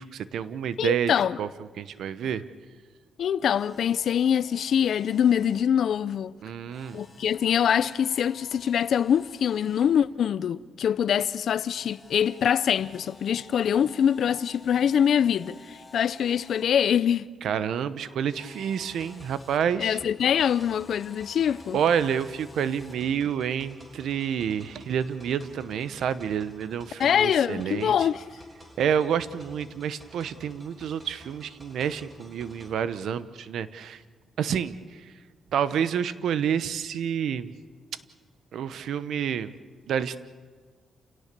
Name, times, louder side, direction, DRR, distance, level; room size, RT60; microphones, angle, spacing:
voice 1, 0.0-1.5 1.8-2.4 6.4-7.0 17.4-20.0 21.7-28.1 28.8-34.0 34.4-35.1 35.5-37.5 38.5-39.5 39.9-40.2, right 8 dB, 75° right, 0.9 m, -28 dB
voice 2, 0.8-1.4 3.2-6.3 6.9-17.3 19.8-21.8 27.0-28.2, left 8 dB, 60° left, 0.6 m, -24 dB
Camera, 3.4-5.6 6.7-10.0 11.7-16.6 18.3-19.6 20.3-23.0, left 2 dB, 15° left, 2.2 m, -52 dB
sound 1, 18.6-32.7, equal, 15° right, 3.2 m, -52 dB
29.0 x 17.5 x 6.8 m
cardioid pair, 140°, 0 cm